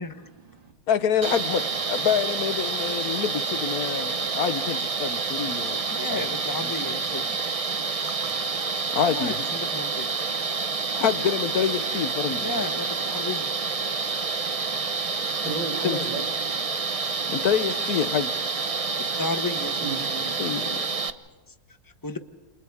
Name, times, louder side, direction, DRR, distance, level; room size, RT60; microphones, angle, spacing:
voice 1, 0.0-0.7 8.2-8.4 15.4-16.3 19.8-20.4, right 3 dB, 85° right, 2 dB, 3.6 m, -34 dB
voice 2, 0.9-5.8 6.1-6.2 6.6-6.7 8.9-9.4 11.0-12.5 15.8-16.0 17.3-18.3 20.4-20.8, left 8 dB, 60° left, 11 dB, 1.4 m, -26 dB
sound 1, 1.2-21.1, right 4 dB, 45° right, 0.4 m, -28 dB
voice 3, 5.9-7.4 8.0-8.2 9.1-10.1 12.4-13.5 14.6-14.7 19.2-20.3 22.0-22.2, left 3 dB, 15° left, 7 dB, 0.8 m, -33 dB
29.5 x 27.5 x 3.6 m, 1.2 s
omnidirectional pair, 2.0 m